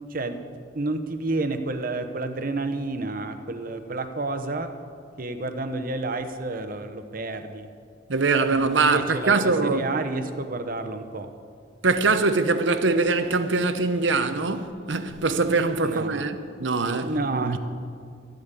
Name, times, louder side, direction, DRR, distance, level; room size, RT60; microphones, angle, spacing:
voice 1, 0.7-4.7 5.2-7.7 8.5-11.3 15.8-16.3 17.0-17.6, right 2 dB, 50° right, 0.9 m, -30 dB
voice 2, 8.1-9.8 11.8-17.6, right 3 dB, 85° right, 0.9 m, -23 dB
13.0 x 8.8 x 8.3 m
head